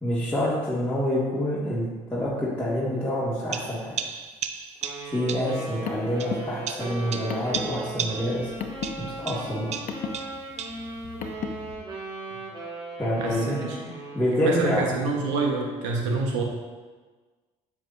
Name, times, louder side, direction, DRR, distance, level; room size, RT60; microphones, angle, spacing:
voice 1, 0.0-4.0 5.1-8.5 9.2-9.7 13.0-13.6 14.1-14.9, equal, 10° left, -10 dB, 2.0 m, -27 dB
sound 1, 3.5-5.6 6.2-8.5 8.8-10.9, right 7 dB, 45° right, 0.5 m, -35 dB
Wind instrument woodwind instrument, 4.8-14.4, right 2 dB, 30° right, 2.1 m, -38 dB
Car, 5.5-11.7, left 6 dB, 55° left, 0.7 m, -37 dB
voice 2, 13.2-13.8 14.4-16.4, right 3 dB, 90° right, 0 dB, 1.2 m, -27 dB
7.6 x 7.2 x 2.6 m, 1.4 s
supercardioid pair, 75°, 15 cm